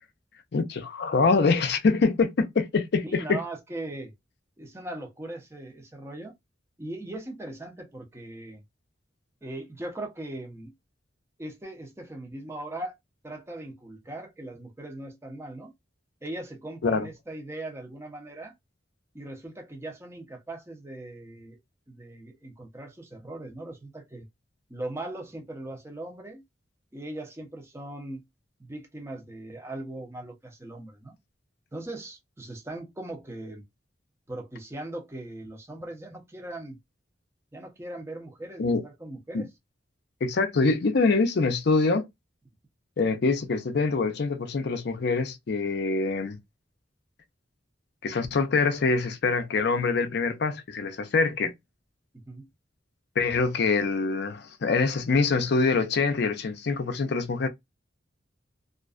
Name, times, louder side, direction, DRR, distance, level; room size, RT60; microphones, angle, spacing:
voice 1, 0.5-3.4 16.8-17.1 38.6-38.8 39.3-39.4 40.2-42.1 43.0-46.4 48.0-51.5 53.2-57.5, left 4 dB, 60° left, 0.5 m, -24 dB
voice 2, 3.0-4.1 4.6-6.3 6.8-8.6 9.4-10.7 11.4-13.0 13.2-15.7 16.2-18.5 19.1-21.6 21.9-24.3 24.7-26.4 26.9-28.2 28.6-31.2 31.7-33.6 34.3-36.8 37.5-39.5 52.3-52.5, right 1 dB, 15° right, 0.6 m, -39 dB
2.4 x 2.2 x 2.3 m
head